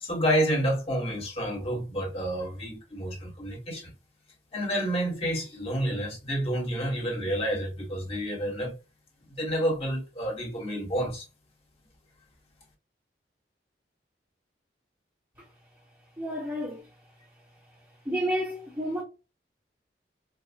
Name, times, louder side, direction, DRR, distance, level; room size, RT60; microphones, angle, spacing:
voice 1, 0.0-3.9 4.5-8.7 9.4-11.2, equal, 30° left, 1.4 m, -29 dB
voice 2, 16.2-16.8 18.0-19.0, equal, 15° right, 1.2 m, -30 dB
4.7 x 2.3 x 2.5 m
head